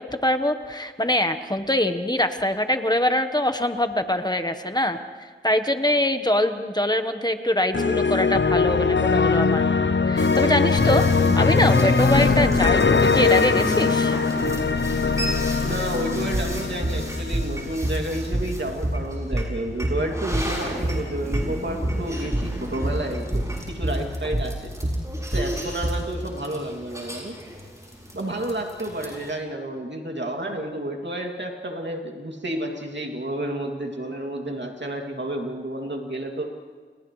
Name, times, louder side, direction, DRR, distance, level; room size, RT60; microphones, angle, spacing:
voice 1, 0.2-5.0 5.4-9.7 10.0-11.0 11.3-14.2, left 1 dB, 20° left, 7 dB, 1.2 m, -23 dB
sound 1, 7.7-17.8, left 4 dB, 75° left, 0.7 m, -21 dB
sound 2, 10.2-29.3, equal, 15° right, 6.7 m, -34 dB
voice 2, 15.6-24.7 25.3-27.4 28.1-36.5, right 1 dB, 70° right, 1 dB, 2.6 m, -31 dB
sound 3, 16.3-26.1, right 1 dB, 40° right, 4.9 m, -27 dB
30.0 x 29.5 x 3.2 m, 1.5 s
wide cardioid pair, 40°, 19 cm